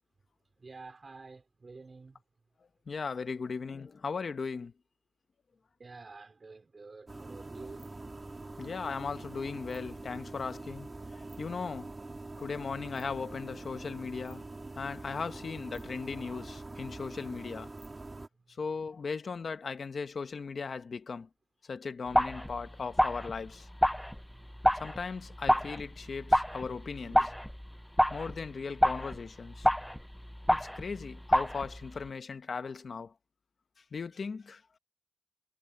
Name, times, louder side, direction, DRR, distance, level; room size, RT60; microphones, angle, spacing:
voice 1, 0.6-2.2 5.8-7.9 18.4-18.6 24.2-24.8 27.0-27.3, right 3 dB, 55° right, 4.8 m, -50 dB
voice 2, 2.9-4.7 8.6-10.9 11.4-11.9 12.4-14.5 14.8-17.7 18.6-21.3 21.6-23.7 24.8-27.2 28.1-29.7 30.5-33.1 33.9-34.6, left 5 dB, 85° left, 1.2 m, -37 dB
sound 1, 7.1-18.3, right 2 dB, 35° right, 2.6 m, -44 dB
sound 2, 22.1-32.1, equal, 5° left, 0.5 m, -30 dB
wide cardioid pair, 115°, 0 cm